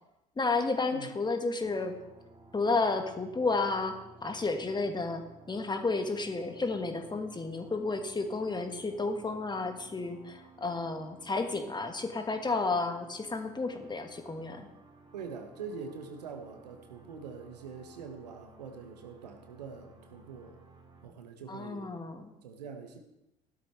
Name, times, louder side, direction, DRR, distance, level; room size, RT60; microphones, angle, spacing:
voice 1, 0.4-2.0 2.5-14.7 21.5-22.3, left 3 dB, 20° left, 6 dB, 1.6 m, -32 dB
sound 1, 1.6-21.1, right 3 dB, 25° right, 2.6 m, -56 dB
voice 2, 15.1-20.5 21.0-22.0 22.4-23.0, right 5 dB, 75° right, 6 dB, 1.3 m, -44 dB
15.5 x 12.0 x 3.3 m, 0.92 s
figure-of-eight pair, 55°, 21 cm